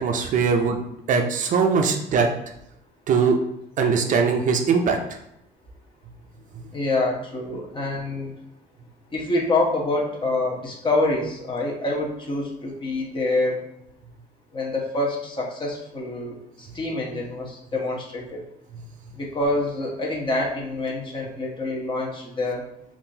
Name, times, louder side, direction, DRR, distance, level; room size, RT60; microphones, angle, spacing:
voice 1, 0.0-0.8 1.1-2.3 3.1-3.4 3.8-5.0, right 5 dB, 50° right, 4 dB, 0.4 m, -20 dB
voice 2, 6.7-8.4 9.1-13.6 14.5-18.4 19.1-22.6, left 2 dB, 30° left, -2 dB, 0.9 m, -26 dB
3.6 x 2.4 x 2.7 m, 0.79 s
cardioid pair, 110°, 17 cm